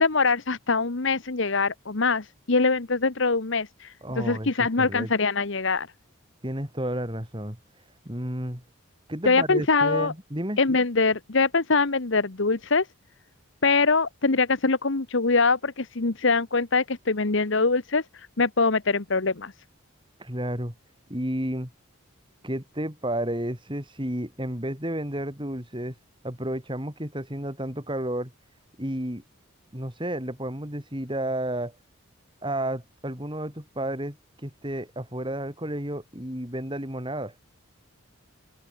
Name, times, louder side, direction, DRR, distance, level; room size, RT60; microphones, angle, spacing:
voice 1, 0.0-5.9 9.3-10.1 10.6-12.8 13.6-18.0 18.4-19.5, left 4 dB, 60° left, 1.1 m, -23 dB
voice 2, 4.0-5.1 6.4-8.6 9.1-10.6 20.2-20.7 21.1-21.7 22.4-26.0 26.2-28.3 28.8-29.2 29.7-31.8 32.4-37.3, right 1 dB, 20° right, 4.3 m, -32 dB
open air
head